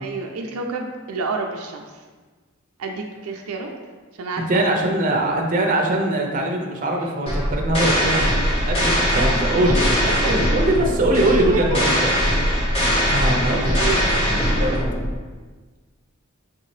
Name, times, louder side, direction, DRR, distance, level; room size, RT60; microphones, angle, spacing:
voice 1, 0.0-1.9 2.8-3.7 4.2-4.8 9.1-10.5 11.2-11.6 13.7-14.0, right 4 dB, 80° right, 2 dB, 0.4 m, -29 dB
voice 2, 4.5-8.2 8.6-12.1 13.1-14.8, right 1 dB, 40° right, 1 dB, 0.6 m, -22 dB
sound 1, 7.3-15.1, equal, 30° left, 1.2 m, -21 dB
5.8 x 2.8 x 3.2 m, 1.4 s
head